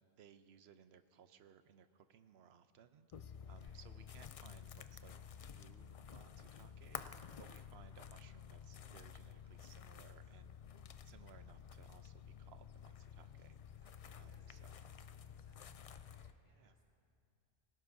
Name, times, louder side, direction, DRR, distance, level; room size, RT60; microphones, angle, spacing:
voice 1, 0.0-3.1 3.5-5.1 5.5-7.0 7.4-10.6 11.0-13.6 14.1-14.7 16.5-16.7, right 8 dB, 75° right, 10 dB, 0.9 m, -63 dB
sound 1, 3.1-16.3, left 8 dB, 65° left, 0.3 m, -52 dB
voice 2, 3.4-3.9 13.8-16.8, equal, 20° left, -4 dB, 2.0 m, -74 dB
24.0 x 17.0 x 2.7 m, 2.5 s
omnidirectional pair, 1.1 m